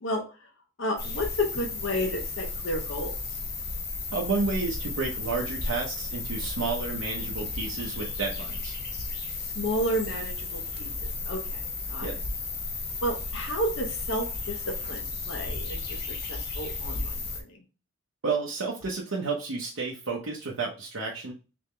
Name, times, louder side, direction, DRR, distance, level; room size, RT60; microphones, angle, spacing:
voice 1, 0.8-3.2 9.4-12.1 13.0-16.0 16.3-17.6, equal, 70° left, 2 dB, 0.8 m, -32 dB
sound 1, 1.0-17.4, left 3 dB, 55° left, 1.1 m, -34 dB
voice 2, 4.1-8.8 12.0-12.2 18.2-21.3, right 4 dB, 90° right, -3 dB, 0.8 m, -31 dB
3.5 x 3.4 x 3.2 m, 0.33 s
head